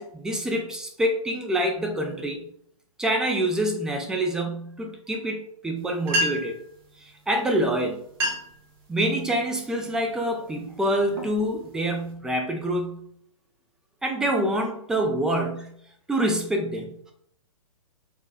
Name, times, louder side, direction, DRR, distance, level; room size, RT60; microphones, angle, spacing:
voice 1, 0.0-2.5 3.0-6.6 7.0-8.0 8.9-13.1 14.0-15.8 16.1-17.1, right 1 dB, 5° right, 2 dB, 0.4 m, -26 dB
sound 1, 5.8-5.9 6.0-6.6 7.5-7.7 8.0-8.6 9.1-9.5 10.1-10.3 10.9-12.1, equal, 40° right, 1.1 m, -29 dB
4.3 x 2.3 x 4.3 m, 0.67 s
figure-of-eight pair, 120°, 18 cm